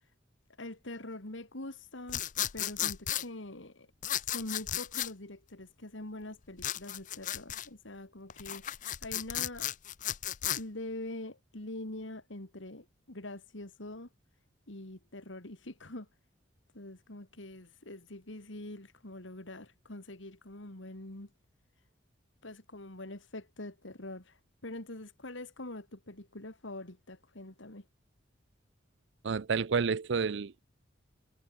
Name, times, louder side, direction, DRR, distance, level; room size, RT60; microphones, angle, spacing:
voice 1, 0.6-2.2 2.5-3.9 4.3-8.7 9.0-9.7 10.5-14.1 14.7-16.1 16.7-21.3 22.4-27.9, left 1 dB, 70° left, 2.7 m, -44 dB
sound 1, 2.1-3.2 4.0-5.1 6.6-7.7 8.3-10.6, left 12 dB, 40° left, 0.5 m, -34 dB
voice 2, 29.2-30.6, right 5 dB, 65° right, 0.5 m, -30 dB
head